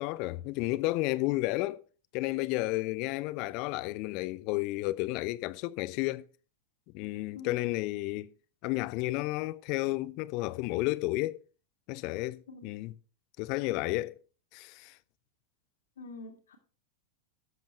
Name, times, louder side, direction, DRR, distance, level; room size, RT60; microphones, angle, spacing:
voice 1, 0.0-1.8 2.1-6.3 6.9-8.3 8.6-11.4 11.9-12.9 13.4-14.1 14.5-15.0, left 19 dB, 45° left, 0.5 m, -32 dB
voice 2, 16.0-16.6, left 3 dB, 65° left, 2.0 m, -45 dB
12.5 x 7.5 x 4.4 m
figure-of-eight pair, 90°, 0 cm